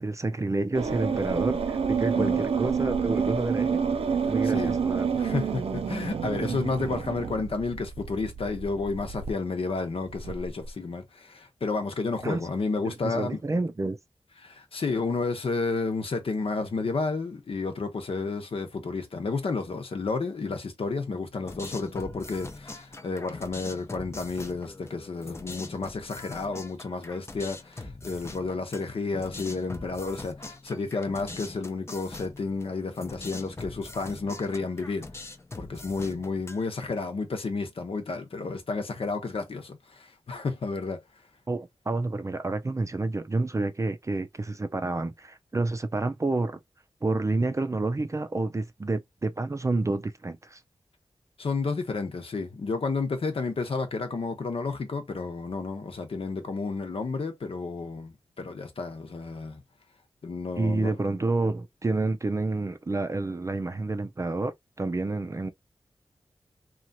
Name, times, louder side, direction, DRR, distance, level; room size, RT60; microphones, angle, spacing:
voice 1, 0.0-3.8 4.3-5.2 12.2-12.4 12.8-14.0 41.5-46.6 47.0-50.6 60.6-64.5 64.8-65.5, right 2 dB, 30° right, 0.5 m, -29 dB
sound 1, 0.7-9.3 10.1-10.7, right 6 dB, 90° right, 0.5 m, -28 dB
voice 2, 4.2-4.8 5.1-13.4 14.4-35.2 35.6-41.0 51.4-59.6 60.2-61.0, left 4 dB, 75° left, 0.9 m, -31 dB
sound 2, 21.4-36.9, left 2 dB, 25° left, 0.6 m, -42 dB
3.0 x 2.4 x 2.6 m
cardioid pair, 50°, 10 cm